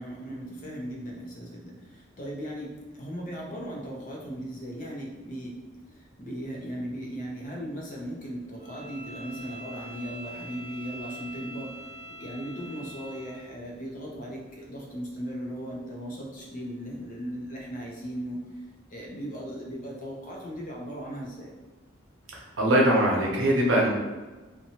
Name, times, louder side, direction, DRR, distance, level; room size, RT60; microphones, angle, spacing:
voice 1, 0.0-5.5 5.9-18.4 18.9-21.5, equal, 40° left, -2 dB, 0.6 m, -37 dB
Bowed string instrument, 8.6-13.5, right 1 dB, 50° right, 0.9 m, -44 dB
voice 2, 22.3-23.9, right 1 dB, 85° right, -3 dB, 0.7 m, -22 dB
2.7 x 2.2 x 2.8 m, 1.2 s
head